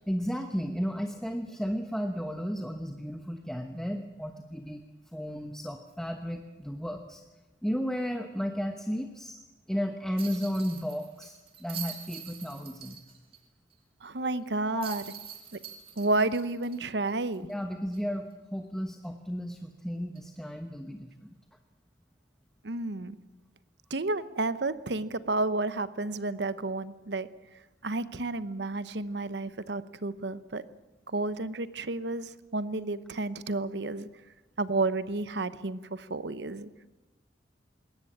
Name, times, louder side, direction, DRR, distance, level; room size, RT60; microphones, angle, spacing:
voice 1, 0.1-4.8 5.1-7.2 7.6-9.4 9.7-13.0 14.2-14.3 14.7-15.0 17.5-21.4, equal, 5° left, 5 dB, 1.0 m, -34 dB
sound 1, 10.2-13.4 13.7-13.8 14.8-17.5 17.9-18.0 20.1-20.3, right 8 dB, 30° right, 2.7 m, -44 dB
voice 2, 14.0-15.0 15.5-15.6 16.0-17.5 22.6-23.2 23.9-27.3 27.8-30.6 31.1-34.1 34.6-36.7, right 2 dB, 70° right, 15 dB, 0.9 m, -31 dB
21.0 x 18.0 x 8.7 m, 1.1 s
head